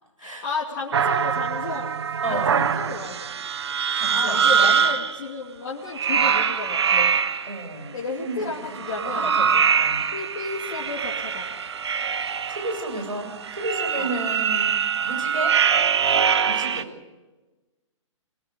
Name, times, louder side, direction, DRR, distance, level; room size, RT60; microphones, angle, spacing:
voice 1, 0.2-1.9 2.2-3.4 4.1-7.2 7.9-9.3 10.1-11.5 14.0-14.1, left 4 dB, 40° left, -3 dB, 2.5 m, -33 dB
sound 1, 0.9-5.2 5.9-7.6 8.7-16.8, right 7 dB, 55° right, 0.8 m, -23 dB
voice 2, 2.2-2.7 3.9-4.8 7.5-10.1 12.5-14.7 15.0-15.6 16.5-16.9, right 2 dB, 85° right, 1 dB, 7.5 m, -32 dB
29.5 x 19.5 x 5.1 m, 1.2 s
figure-of-eight pair, 125°, 17 cm